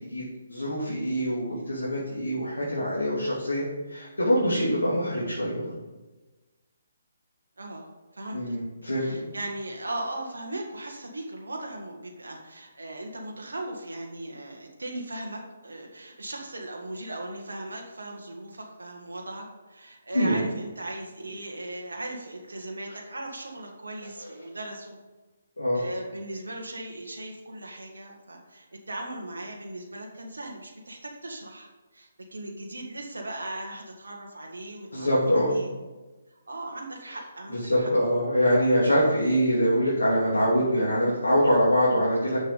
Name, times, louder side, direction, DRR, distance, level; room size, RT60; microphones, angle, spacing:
voice 1, 0.5-3.6 3.9-5.7 8.3-9.3 20.1-20.4 25.6-25.8 34.9-35.6 37.5-42.4, equal, 80° left, -8 dB, 3.1 m, -24 dB
voice 2, 7.6-7.9 8.1-8.6 8.9-25.0 25.7-35.7 36.5-37.9 39.0-39.2, right 1 dB, 75° right, 0 dB, 1.7 m, -38 dB
7.3 x 6.7 x 5.3 m, 1.2 s
figure-of-eight pair, 140°, 0 cm